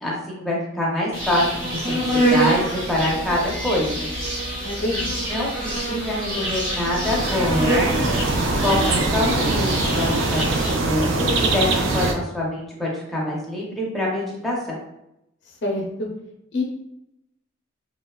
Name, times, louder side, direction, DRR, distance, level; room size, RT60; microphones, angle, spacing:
voice 1, 0.0-2.6 2.9-4.1 5.3-7.9 8.4-10.4 10.8-11.7 11.9-14.8, left 1 dB, ahead, -5 dB, 0.6 m, -25 dB
Insect, 1.1-11.0, right 1 dB, 40° right, 1.1 m, -26 dB
voice 2, 4.6-5.1 15.6-16.1 16.5-16.6, left 2 dB, 60° left, 0 dB, 0.5 m, -26 dB
sound 1, 7.0-12.1, right 2 dB, 75° right, 0.4 m, -23 dB
2.9 x 2.0 x 2.2 m, 0.84 s
head